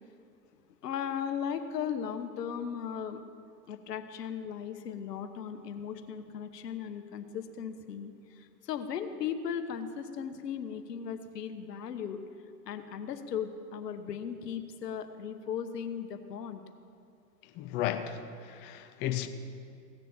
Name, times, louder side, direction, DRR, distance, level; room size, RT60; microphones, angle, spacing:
voice 1, 0.8-3.2 3.7-12.2 12.6-16.6, left 8 dB, 75° left, 1.2 m, -37 dB
voice 2, 17.6-19.3, left 11 dB, 25° left, 0.5 m, -34 dB
17.0 x 6.7 x 7.2 m
hypercardioid pair, 110°, 48 cm